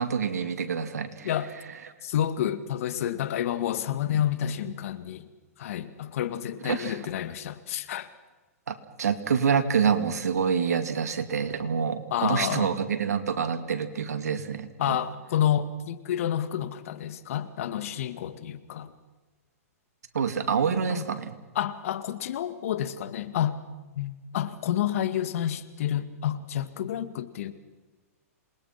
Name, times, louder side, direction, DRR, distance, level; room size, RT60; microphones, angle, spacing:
voice 1, 0.0-1.3 6.6-7.0 8.7-15.0 20.1-21.3, right 6 dB, 85° right, 9 dB, 2.4 m, -27 dB
voice 2, 2.0-5.3 5.6-8.1 12.1-12.7 14.8-18.9 20.9-21.1 21.6-23.6 24.0-27.5, left 10 dB, 60° left, 12 dB, 2.0 m, -29 dB
27.5 x 21.0 x 6.0 m, 1.2 s
hypercardioid pair, 140°, 8 cm